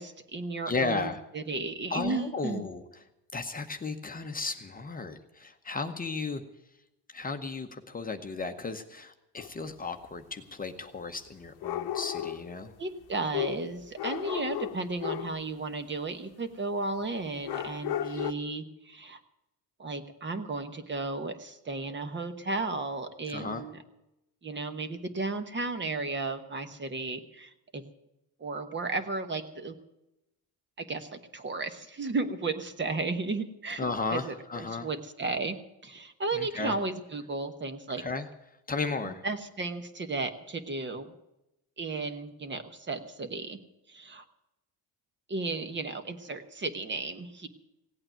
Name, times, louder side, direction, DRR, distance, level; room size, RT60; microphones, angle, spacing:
voice 1, 0.0-2.6 12.8-19.2 19.8-23.8 24.4-27.8 28.4-29.7 30.8-33.8 34.1-35.6 35.8-38.0 39.2-41.1 41.8-43.6 43.9-44.2 45.3-47.5, right 3 dB, 30° right, 9 dB, 1.2 m, -34 dB
voice 2, 0.7-1.2 1.9-3.0 3.3-6.4 7.1-12.7 18.1-18.2 23.3-23.6 33.8-34.9 36.3-36.8 38.0-38.3 38.7-39.2, left 4 dB, 20° left, 5 dB, 0.9 m, -34 dB
sound 1, 9.4-9.5 11.6-12.5 13.3-15.4 17.5-18.3, left 11 dB, 70° left, 0.9 m, -34 dB
17.0 x 8.8 x 9.1 m, 0.91 s
cardioid pair, 130°, 39 cm